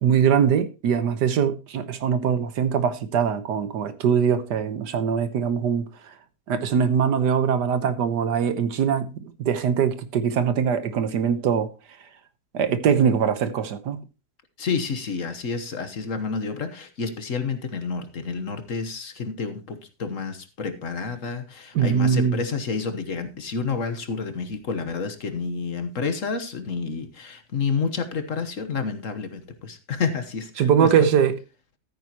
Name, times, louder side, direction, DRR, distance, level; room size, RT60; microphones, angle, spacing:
voice 1, 0.0-6.1 6.5-11.7 12.5-14.0 21.8-22.4 30.6-31.4, right 7 dB, 75° right, 1.6 m, -22 dB
voice 2, 14.6-30.9, left 5 dB, 50° left, 1.5 m, -29 dB
13.5 x 9.3 x 2.9 m
omnidirectional pair, 1.8 m